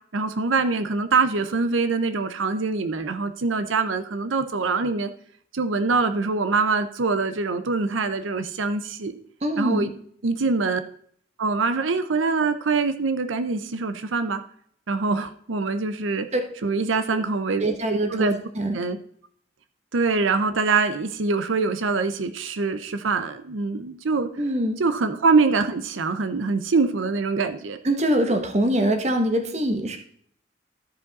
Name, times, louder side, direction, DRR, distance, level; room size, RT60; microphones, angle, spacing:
voice 1, 0.1-5.1 5.5-9.1 9.6-9.9 10.2-10.8 11.4-14.4 14.9-16.3 16.6-17.7 18.1-18.4 18.7-19.0 19.9-24.3 24.8-27.8, right 4 dB, 90° right, 9 dB, 0.7 m, -24 dB
voice 2, 9.4-9.9 16.3-16.7 17.1-17.2 17.6-18.8 24.4-24.8 27.8-30.0, right 1 dB, 35° right, 6 dB, 1.1 m, -24 dB
14.0 x 5.1 x 4.0 m, 0.62 s
head